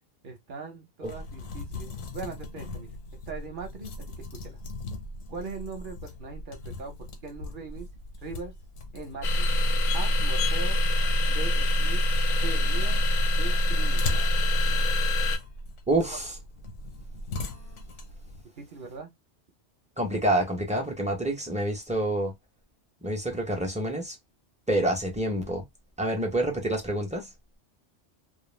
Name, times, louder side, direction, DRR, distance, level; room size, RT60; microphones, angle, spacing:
voice 1, 0.2-2.9 3.3-4.6 5.3-7.0 7.2-7.9 8.2-8.5 8.9-9.5 9.9-10.8 11.3-12.0 12.4-13.1 13.4-14.2 18.6-19.1, right 4 dB, 50° right, 0.8 m, -40 dB
sound 1, 1.0-18.4, left 3 dB, 85° left, 1.0 m, -40 dB
sound 2, 9.2-15.4, equal, 60° left, 0.5 m, -24 dB
voice 2, 15.9-16.3 20.0-22.3 23.0-24.2 24.7-25.6 26.0-27.3, right 1 dB, 10° right, 0.3 m, -27 dB
2.3 x 2.0 x 3.1 m
omnidirectional pair, 1.2 m